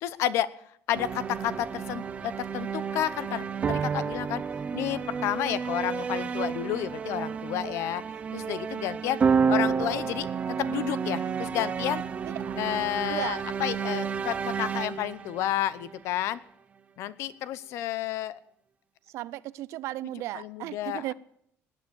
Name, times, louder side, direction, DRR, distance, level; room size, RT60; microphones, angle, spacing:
voice 1, 0.0-0.5 0.9-4.4 4.7-8.0 8.3-9.2 9.5-12.0 12.6-16.4 17.0-18.4 20.3-21.1, left 12 dB, 65° left, 0.7 m, -31 dB
sound 1, 0.9-16.2, right 6 dB, 25° right, 0.6 m, -30 dB
voice 2, 12.2-12.6 13.1-13.4 19.1-21.1, right 15 dB, 70° right, 0.5 m, -35 dB
18.5 x 9.1 x 7.0 m
cardioid pair, 170°, 5 cm